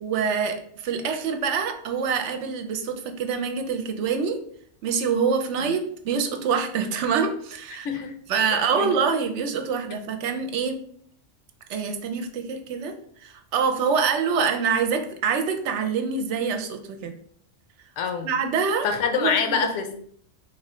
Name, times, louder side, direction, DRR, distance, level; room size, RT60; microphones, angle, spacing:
voice 1, 0.0-4.4 4.8-7.9 8.3-10.8 11.7-17.1 18.2-18.9 19.1-19.7, right 6 dB, 70° right, 7 dB, 0.8 m, -25 dB
voice 2, 7.8-8.2 8.7-8.9 18.0-18.3 18.8-20.0, left 6 dB, 80° left, 5 dB, 1.0 m, -25 dB
3.1 x 2.7 x 4.1 m, 0.63 s
omnidirectional pair, 1.3 m